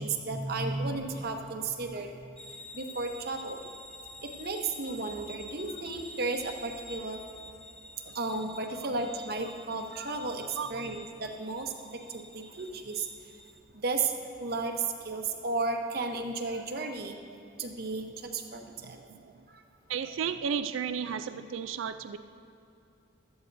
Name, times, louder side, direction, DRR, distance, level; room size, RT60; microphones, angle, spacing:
voice 1, 0.0-2.1 2.7-3.6 4.4-7.2 8.1-10.4 10.7-11.7 12.1-13.1 13.7-14.1 14.4-14.7 15.0-17.2 17.6-19.0, right 3 dB, 50° right, 4 dB, 0.9 m, -33 dB
sound 1, 2.4-13.6, left 1 dB, 5° left, 0.5 m, -48 dB
voice 2, 10.5-10.9 16.7-16.9 17.3-17.4 18.8-19.4 19.9-22.2, right 7 dB, 85° right, 11 dB, 0.4 m, -35 dB
16.0 x 12.5 x 2.7 m, 2.8 s
head